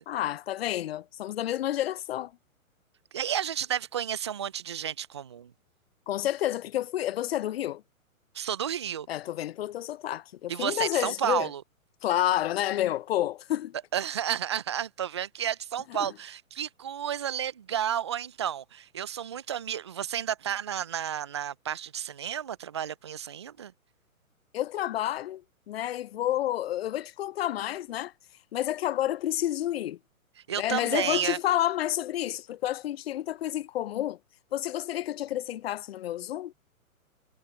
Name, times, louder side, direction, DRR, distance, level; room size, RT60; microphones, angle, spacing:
voice 1, 0.1-2.3 6.1-7.8 9.1-11.5 12.0-13.7 16.0-16.1 24.5-28.1 28.5-30.0 30.6-34.2 34.5-36.5, left 13 dB, 45° left, 0.5 m, -30 dB
voice 2, 3.1-5.5 8.3-9.1 10.5-11.6 13.9-23.7 30.5-31.4, right 9 dB, 20° right, 0.3 m, -31 dB
figure-of-eight pair, 125°, 42 cm